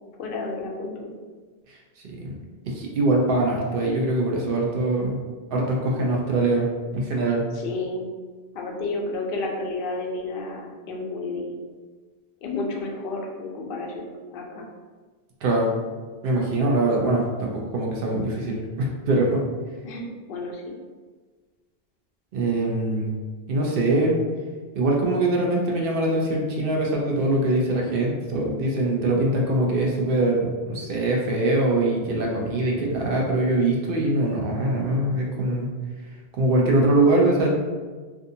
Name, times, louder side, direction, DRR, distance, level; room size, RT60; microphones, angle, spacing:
voice 1, 0.1-1.1 7.5-8.1 8.5-11.6 12.4-14.7 19.8-20.7, left 2 dB, 65° left, 0 dB, 0.7 m, -31 dB
voice 2, 2.7-5.2 5.5-6.7 6.9-7.4 15.4-15.7 16.2-19.4 22.3-23.1 23.5-24.2 24.7-35.7 36.3-37.5, right 2 dB, 65° right, -1 dB, 0.8 m, -23 dB
2.6 x 2.4 x 2.6 m, 1.4 s
omnidirectional pair, 1.0 m